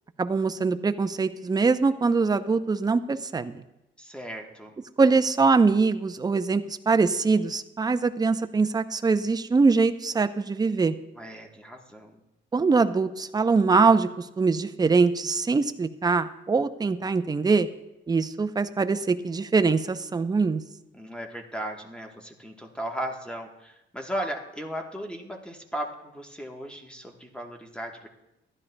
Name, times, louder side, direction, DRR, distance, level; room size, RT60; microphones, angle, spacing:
voice 1, 0.2-3.6 5.0-10.9 12.5-17.7 18.1-20.6, right 4 dB, 20° right, 9 dB, 0.5 m, -23 dB
voice 2, 4.0-4.7 11.2-12.1 20.9-28.1, right 1 dB, 5° left, 2 dB, 1.2 m, -36 dB
14.5 x 11.0 x 2.2 m, 0.91 s
cardioid pair, 90°, 20 cm